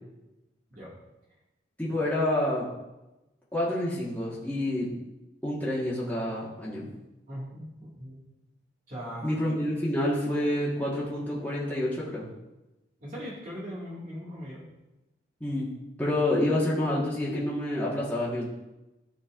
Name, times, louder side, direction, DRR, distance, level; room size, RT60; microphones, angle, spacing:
voice 1, 1.8-2.7 3.5-4.9 5.4-6.9 9.2-12.2 15.4-15.7 16.0-18.5, left 1 dB, 10° left, -8 dB, 1.5 m, -28 dB
voice 2, 7.3-8.2 8.9-9.3 13.0-14.6, equal, 45° right, -7 dB, 2.0 m, -39 dB
13.5 x 5.3 x 2.5 m, 1.0 s
head